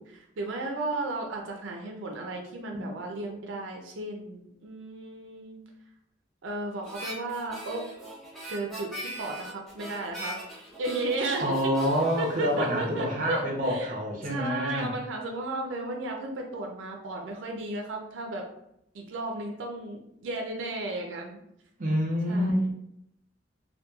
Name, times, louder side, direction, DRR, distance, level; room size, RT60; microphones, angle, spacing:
voice 1, 0.0-5.6 6.4-7.8 8.5-10.4 10.8-11.5 12.2-13.9 14.2-18.4 18.9-21.4 22.3-22.7, right 2 dB, 90° right, 1 dB, 0.4 m, -34 dB
Harmonica, 6.8-13.3, right 1 dB, ahead, 0.6 m, -41 dB
voice 2, 11.4-14.9 21.8-22.7, equal, 45° right, -1 dB, 0.6 m, -27 dB
2.9 x 2.2 x 2.2 m, 0.78 s
head